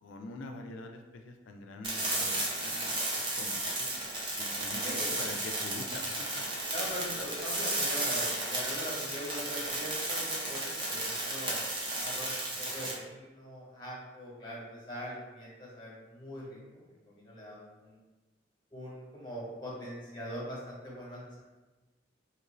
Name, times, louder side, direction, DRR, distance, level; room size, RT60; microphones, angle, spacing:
voice 1, 0.0-3.0 3.4-3.9 4.4-6.1 6.3-6.4 7.1-7.3, left 2 dB, 85° left, 4 dB, 0.4 m, -45 dB
sound 1, 1.8-12.9, right 1 dB, 25° right, 0.6 m, -33 dB
voice 2, 4.8-5.2 6.7-11.6 11.9-18.0 18.7-21.4, equal, 25° left, -5 dB, 1.0 m, -42 dB
3.0 x 2.5 x 3.0 m, 1.1 s
head